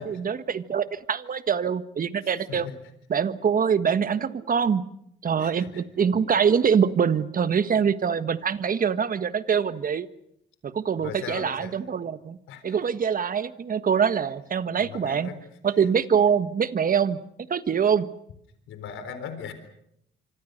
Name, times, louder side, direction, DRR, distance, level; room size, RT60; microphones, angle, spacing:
voice 1, 0.0-2.7 3.1-4.8 5.2-10.1 10.6-12.4 12.6-15.3 15.6-17.2 17.5-18.1, right 7 dB, 45° right, 12 dB, 1.5 m, -24 dB
voice 2, 2.2-2.8 5.4-5.8 11.0-11.8 12.5-12.9 14.7-15.4 18.7-19.5, left 7 dB, 85° left, 9 dB, 4.0 m, -39 dB
26.0 x 25.5 x 6.7 m, 0.74 s
cardioid pair, 90°, 20 cm